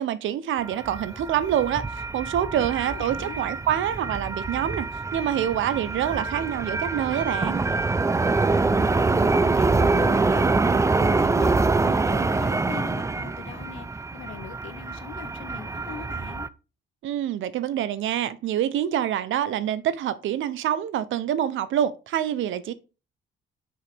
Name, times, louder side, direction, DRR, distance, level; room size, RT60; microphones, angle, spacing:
voice 1, 0.0-4.9 5.1-7.6 17.0-22.7, right 10 dB, 80° right, 0.8 m, -26 dB
sound 1, 0.6-16.5, right 3 dB, 15° right, 0.5 m, -25 dB
voice 2, 2.5-3.4 8.4-10.6 11.0-16.5, left 9 dB, 80° left, 1.1 m, -40 dB
6.5 x 4.9 x 5.0 m
cardioid pair, 90°, 20 cm